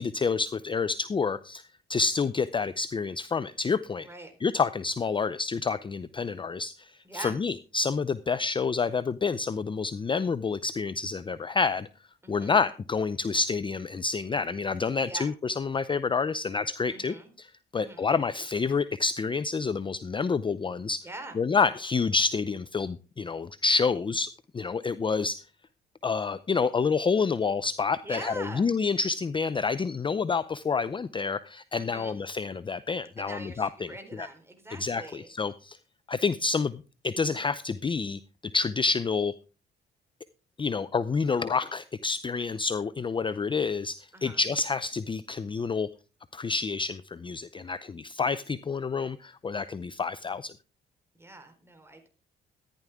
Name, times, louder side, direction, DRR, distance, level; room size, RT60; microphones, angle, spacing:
voice 1, 0.0-1.6 1.9-4.1 4.4-11.9 12.3-17.5 17.7-21.0 21.4-25.4 26.0-33.9 34.2-34.3 34.8-35.8 36.1-39.3 40.6-45.9 46.3-50.5, left 5 dB, 25° left, 15 dB, 0.5 m, -28 dB
voice 2, 4.0-4.3 7.0-7.4 12.2-12.6 15.0-15.3 16.9-17.3 17.7-18.1 21.0-21.4 28.0-28.7 31.7-32.2 33.2-35.3 44.1-44.4 51.1-52.1, right 2 dB, 10° right, 5 dB, 4.2 m, -43 dB
14.5 x 10.5 x 3.6 m, 0.34 s
cardioid pair, 90°, 20 cm